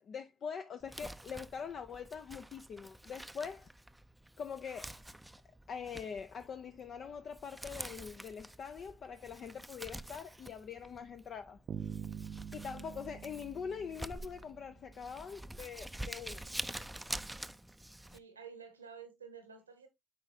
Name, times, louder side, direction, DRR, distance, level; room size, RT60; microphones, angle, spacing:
voice 1, 0.0-3.7 4.4-5.0 5.7-11.6 12.5-16.4, left 6 dB, 50° left, 0.5 m, -43 dB
Crumpling crinkling, 0.8-18.2, right 1 dB, 5° right, 0.5 m, -47 dB
Bass guitar, 11.7-14.8, right 8 dB, 45° right, 0.7 m, -45 dB
voice 2, 18.1-19.9, right 6 dB, 85° right, 1.1 m, -51 dB
8.5 x 4.8 x 2.7 m
figure-of-eight pair, 50°, 0 cm